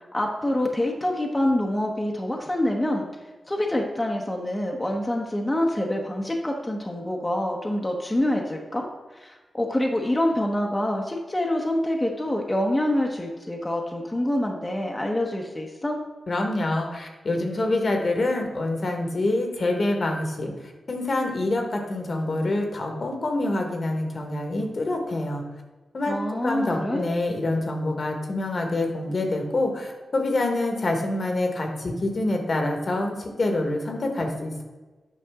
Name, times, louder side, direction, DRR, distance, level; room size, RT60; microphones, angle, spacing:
voice 1, 0.1-3.0 3.5-8.9 9.2-16.0 26.1-27.1, left 1 dB, 15° left, 0 dB, 1.0 m, -26 dB
voice 2, 16.3-25.4 25.9-26.2 26.4-34.6, left 2 dB, 55° left, 3 dB, 1.4 m, -26 dB
8.6 x 5.3 x 3.6 m, 1.3 s
cardioid pair, 70°, 0 cm